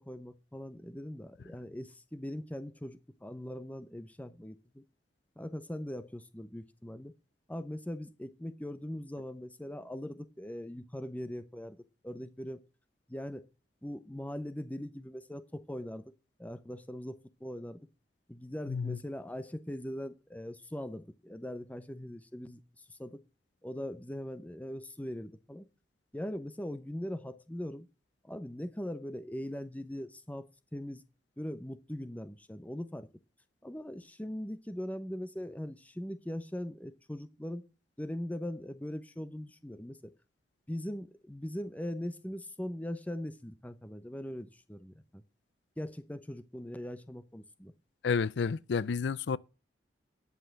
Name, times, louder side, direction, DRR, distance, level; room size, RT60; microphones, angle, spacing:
voice 1, 0.0-4.8 5.4-7.1 7.5-12.6 13.1-13.4 13.8-16.1 16.4-17.8 18.3-22.6 22.9-23.2 23.6-25.6 26.1-27.9 28.2-30.5 30.7-31.0 31.4-33.1 33.6-37.6 38.0-40.1 40.7-45.2 45.8-47.7, left 1 dB, 10° left, 0.7 m, -40 dB
voice 2, 48.0-49.4, left 5 dB, 80° left, 0.4 m, -30 dB
10.0 x 5.6 x 7.9 m
head